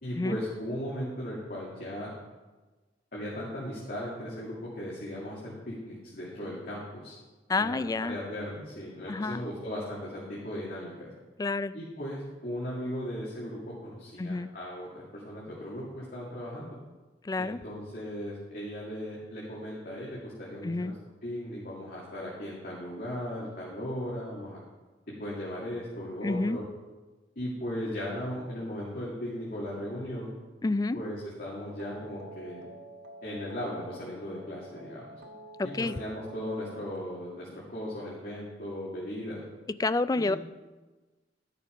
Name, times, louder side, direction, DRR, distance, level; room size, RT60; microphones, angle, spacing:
voice 1, 0.0-2.1 3.1-7.1 7.6-11.1 11.7-16.8 17.4-20.9 21.2-24.6 25.2-26.6 27.4-30.3 30.9-32.7 33.2-35.2 35.6-39.4 40.2-40.3, equal, 55° left, -6 dB, 2.4 m, -37 dB
voice 2, 7.5-8.2 9.1-9.4 11.4-11.7 14.2-14.5 17.2-17.6 20.6-20.9 26.2-26.6 30.6-31.0 35.6-35.9 39.8-40.4, left 3 dB, 20° left, 14 dB, 0.3 m, -29 dB
sound 1, 31.8-37.0, right 1 dB, 85° right, 1.3 m, -49 dB
12.5 x 6.7 x 5.2 m, 1.2 s
head